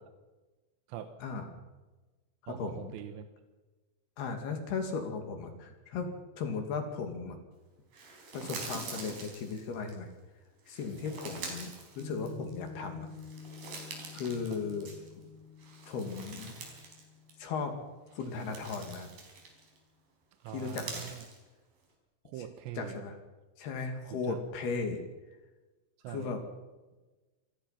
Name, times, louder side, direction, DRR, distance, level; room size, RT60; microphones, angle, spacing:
voice 1, 0.9-1.2 2.5-3.3 14.5-14.6 20.4-21.3 22.2-23.0 24.1-24.4 26.0-26.4, right 10 dB, 75° right, 8 dB, 3.1 m, -43 dB
voice 2, 2.4-2.8 4.2-6.1 6.4-7.4 8.3-10.1 10.7-13.1 14.1-14.9 15.9-16.6 17.4-17.7 18.2-19.1 20.5-21.1 22.8-23.2 23.6-25.0 26.1-26.4, left 5 dB, 60° left, 5 dB, 4.1 m, -36 dB
sound 1, 7.9-9.9 10.7-12.7 13.1-15.2 15.6-17.0 17.3-17.5 18.1-19.8 20.5-21.4, right 4 dB, 50° right, 5.6 m, -45 dB
Piano, 12.0-18.7, left 5 dB, 85° left, 9.3 m, -49 dB
28.0 x 18.0 x 5.8 m, 1.2 s
omnidirectional pair, 5.5 m